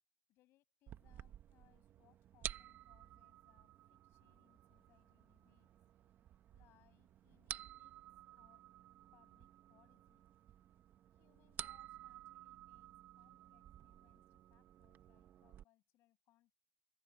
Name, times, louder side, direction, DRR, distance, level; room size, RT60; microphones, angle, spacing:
voice 1, 0.3-5.7 6.5-7.9 8.3-8.6 9.1-10.3 11.1-16.5, left 16 dB, 50° left, 6.8 m, -74 dB
sound 1, 0.9-15.6, right 11 dB, 40° right, 0.8 m, -53 dB
open air
cardioid pair, 155°, 5 cm